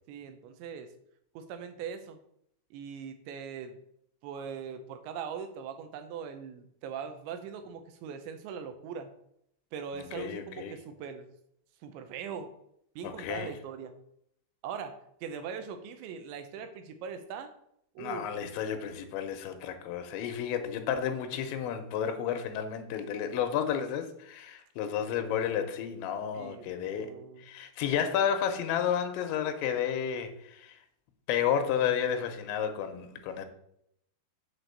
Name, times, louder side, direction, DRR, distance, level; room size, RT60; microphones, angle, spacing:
voice 1, 0.1-0.9 1.3-2.2 2.7-3.8 4.2-9.1 9.7-11.3 11.8-12.5 13.0-13.9 14.6-17.5 18.0-18.3 26.3-27.5, right 6 dB, 80° right, 7 dB, 3.1 m, -41 dB
voice 2, 9.9-10.8 13.0-13.5 18.0-30.8 31.3-33.5, left 8 dB, 90° left, 7 dB, 3.1 m, -32 dB
7.4 x 4.4 x 6.8 m, 0.73 s
omnidirectional pair, 5.3 m